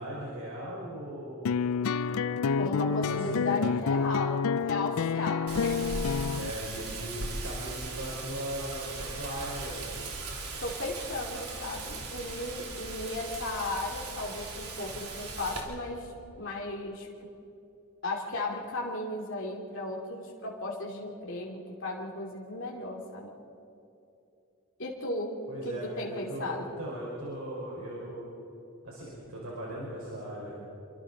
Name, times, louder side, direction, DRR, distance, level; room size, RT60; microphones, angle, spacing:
voice 1, 0.0-1.6 2.8-3.7 6.3-9.9 25.5-28.3 28.8-30.6, right 1 dB, 70° right, -5 dB, 4.8 m, -38 dB
sound 1, 1.4-6.5, left 5 dB, 75° left, 0.4 m, -28 dB
voice 2, 2.6-4.4 4.6-6.1 10.6-16.1 16.4-17.1 18.0-23.3 24.8-25.3 25.6-26.7, left 2 dB, 60° left, -2 dB, 2.6 m, -35 dB
Wind, 5.5-15.6, right 3 dB, 85° right, 3.2 m, -39 dB
28.0 x 24.0 x 4.1 m, 2.8 s
head